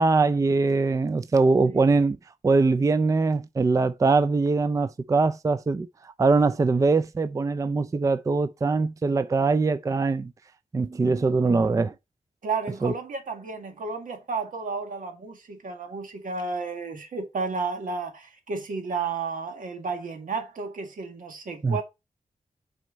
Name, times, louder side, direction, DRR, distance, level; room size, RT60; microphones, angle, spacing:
voice 1, 0.0-2.2 2.4-5.9 6.2-10.3 10.7-11.9 12.8-12.9 21.6-21.8, right 3 dB, 25° right, 0.4 m, -22 dB
voice 2, 12.4-21.8, right 4 dB, 85° right, 1.9 m, -32 dB
6.3 x 4.5 x 5.1 m
wide cardioid pair, 145°, 14 cm